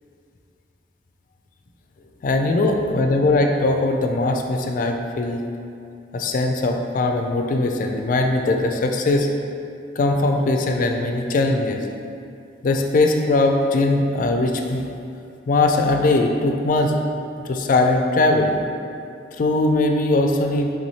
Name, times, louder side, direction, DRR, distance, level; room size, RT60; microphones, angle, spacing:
voice 1, 2.2-5.4 6.1-9.3 10.0-11.8 12.6-14.8 15.5-16.9 17.4-18.6 19.4-20.7, left 2 dB, 45° left, 3 dB, 0.3 m, -20 dB
3.5 x 3.2 x 4.0 m, 2.5 s
head